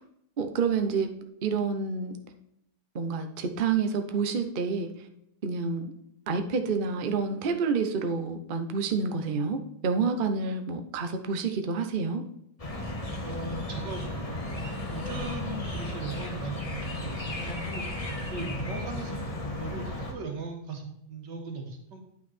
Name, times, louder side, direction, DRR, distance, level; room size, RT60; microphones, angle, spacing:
voice 1, 0.4-1.1 1.4-2.2 2.9-4.9 5.4-5.9 6.3-12.2, right 5 dB, 75° right, 6 dB, 0.4 m, -28 dB
sound 1, 12.6-20.1, left 1 dB, 25° left, 1.0 m, -34 dB
voice 2, 13.2-14.6 14.9-17.9 18.3-22.0, right 3 dB, 60° right, 3 dB, 2.1 m, -38 dB
9.4 x 5.6 x 4.2 m, 0.78 s
omnidirectional pair, 2.2 m